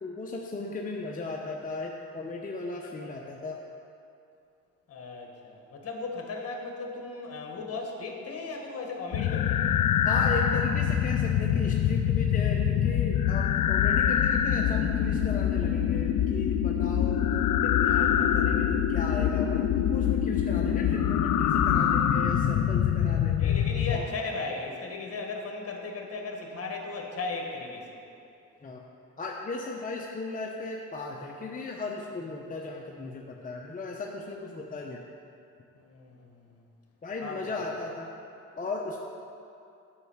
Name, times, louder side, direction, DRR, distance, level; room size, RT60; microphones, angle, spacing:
voice 1, 0.0-3.6 10.0-17.2 17.6-23.6 23.9-24.1 28.6-28.8 29.2-35.0 37.0-38.1 38.6-39.0, left 3 dB, 25° left, 0 dB, 0.8 m, -36 dB
voice 2, 4.9-9.7 23.4-28.0 35.7-36.6 37.2-37.5, left 3 dB, 50° left, 1 dB, 1.8 m, -36 dB
sound 1, 9.1-24.0, left 9 dB, 80° left, 0.6 m, -25 dB
9.7 x 5.6 x 7.3 m, 2.6 s
cardioid pair, 90°, 30 cm